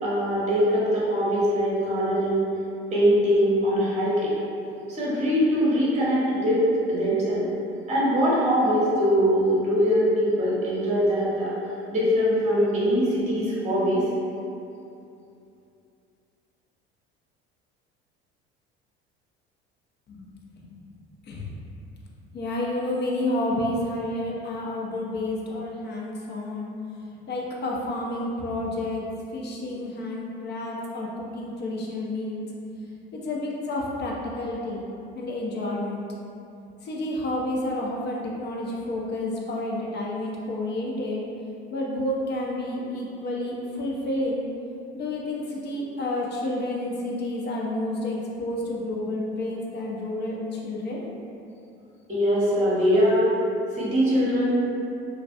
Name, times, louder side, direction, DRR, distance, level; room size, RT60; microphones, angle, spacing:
voice 1, 0.0-2.4 2.9-4.3 4.9-7.4 7.9-11.5 11.9-14.1 52.1-53.3 53.7-54.5, equal, 25° right, -7 dB, 0.8 m, -22 dB
voice 2, 22.3-26.7 27.3-29.0 29.3-32.4 33.1-34.8 35.2-36.0 36.8-41.2 41.7-44.4 44.9-51.0, left 1 dB, 35° left, -3 dB, 0.5 m, -30 dB
2.4 x 2.1 x 2.4 m, 2.7 s
hypercardioid pair, 65°, 30 cm